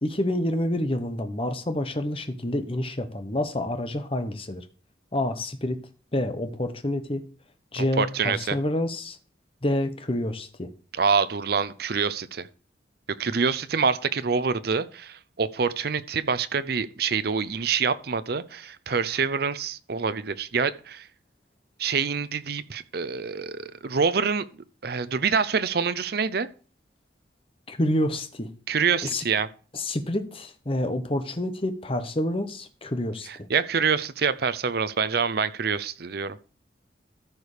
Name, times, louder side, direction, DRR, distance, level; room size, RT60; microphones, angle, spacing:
voice 1, 0.0-4.6 5.1-5.8 6.1-7.2 7.7-9.2 9.6-10.7 27.7-28.5 29.0-29.2 29.7-33.5, left 1 dB, 30° left, 1.0 m, -28 dB
voice 2, 7.7-8.6 10.9-12.5 13.2-21.1 21.8-26.5 28.7-29.5 33.3-36.4, right 5 dB, 55° right, 0.6 m, -26 dB
14.0 x 4.9 x 5.0 m
head